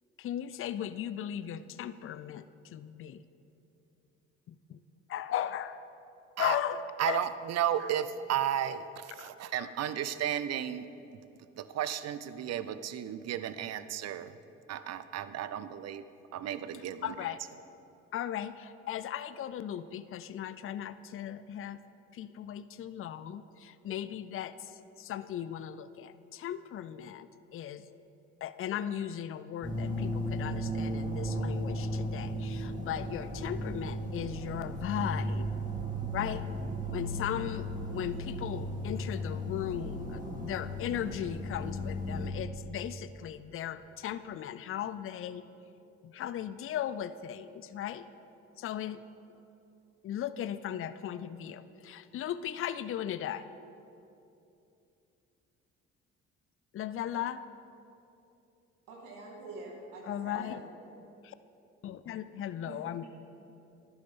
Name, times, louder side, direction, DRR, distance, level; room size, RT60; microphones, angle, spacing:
voice 1, 0.2-2.4 2.7-3.2 4.5-4.8 5.1-5.9 6.4-7.3 9.2-9.3 9.6-9.7 17.0-17.4 18.1-21.8 22.1-27.8 28.4-35.5 36.1-36.5 36.9-45.4 46.0-48.1 48.6-49.0 50.0-53.5 56.7-57.4 60.0-60.6 61.2-61.3 61.8-63.1, left 10 dB, 45° left, 14 dB, 0.5 m, -37 dB
voice 2, 7.0-10.9 11.5-14.4 14.7-16.1 16.3-17.1, right 10 dB, 55° right, 13 dB, 0.6 m, -33 dB
sound 1, 29.6-42.3, equal, 25° right, 2.4 m, -35 dB
voice 3, 58.9-60.6 62.6-62.8, right 3 dB, 80° right, -2 dB, 2.0 m, -45 dB
11.5 x 9.8 x 3.7 m, 2.8 s
hypercardioid pair, 55°, 31 cm